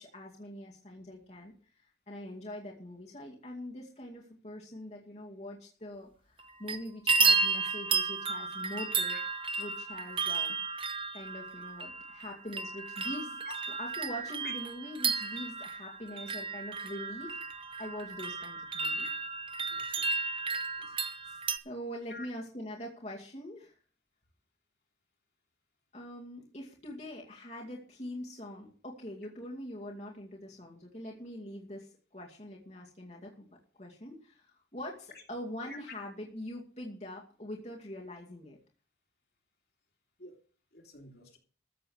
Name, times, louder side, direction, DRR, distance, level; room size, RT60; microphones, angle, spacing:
voice 1, 0.0-1.7 2.1-9.2 9.6-10.6 11.1-13.4 13.8-17.4 17.8-19.1 20.9-21.4 21.6-23.7 25.9-33.5 33.8-38.6, left 1 dB, 40° left, 2.3 m, -43 dB
sound 1, 6.4-6.8 7.1-21.6, right 4 dB, 30° right, 0.9 m, -33 dB
voice 2, 19.7-20.1 20.8-21.0 22.1-22.3 35.7-35.8 40.2-40.4 40.7-41.4, left 4 dB, 60° left, 3.1 m, -48 dB
14.5 x 7.6 x 6.4 m
head